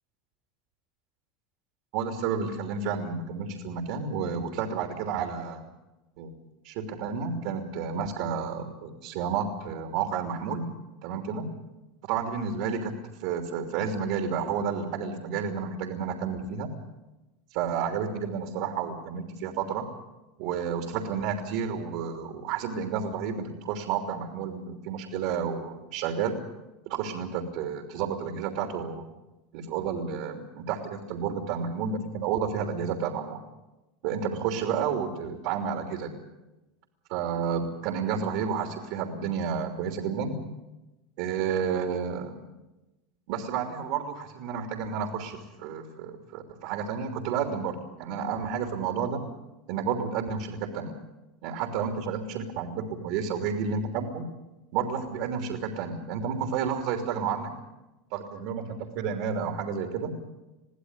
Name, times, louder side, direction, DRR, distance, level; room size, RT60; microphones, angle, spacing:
voice 1, 1.9-5.6 6.2-6.3 6.6-10.7 11.0-11.5 12.0-12.9 13.2-16.7 17.5-19.9 20.4-26.4 26.9-29.0 29.5-33.4 34.0-36.2 37.1-40.3 41.2-42.4 43.3-49.2 49.7-51.0 51.4-54.2 54.7-57.5 58.1-60.1, right 6 dB, 65° right, 6 dB, 3.1 m, -31 dB
23.0 x 15.5 x 9.8 m, 1.0 s
hypercardioid pair, 95°, 0 cm